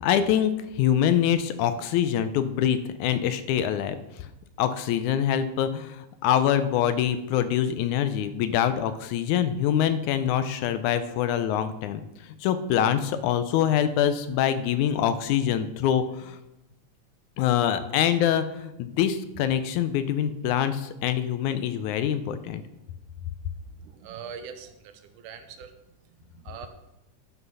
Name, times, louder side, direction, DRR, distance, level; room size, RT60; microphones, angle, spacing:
voice 1, 0.0-4.0 4.2-4.3 4.6-16.4 17.4-22.6, left 9 dB, 80° left, 11 dB, 2.0 m, -25 dB
voice 2, 23.8-25.7 26.2-26.7, right 7 dB, 85° right, 8 dB, 2.4 m, -42 dB
11.5 x 6.0 x 5.4 m, 0.90 s
omnidirectional pair, 3.6 m